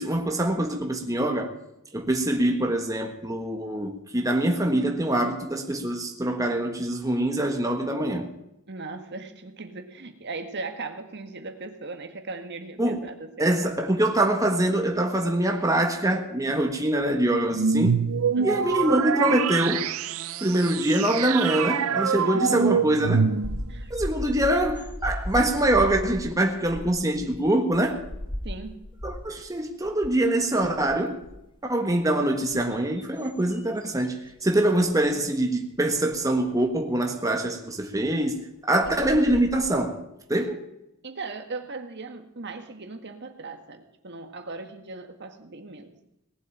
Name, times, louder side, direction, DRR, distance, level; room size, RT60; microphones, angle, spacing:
voice 1, 0.0-1.5 1.9-8.3 12.8-13.1 13.4-18.0 18.4-19.9 20.4-23.3 23.9-28.0 29.0-31.2 31.6-40.0 40.3-40.6, right 1 dB, 15° right, 1.5 m, -24 dB
voice 2, 8.7-13.6 18.3-18.7 22.3-22.9 23.7-23.9 28.4-28.7 33.2-33.3 38.9-39.0 41.0-46.0, right 3 dB, 55° right, 1.7 m, -38 dB
sound 1, 17.5-23.8, right 6 dB, 75° right, 0.6 m, -25 dB
sound 2, 23.4-29.5 29.8-30.2 30.6-31.5 32.2-34.4 34.8-35.1 36.1-36.2 38.4-38.5 38.8-39.7, equal, 25° left, 1.2 m, -36 dB
18.5 x 8.0 x 9.1 m
head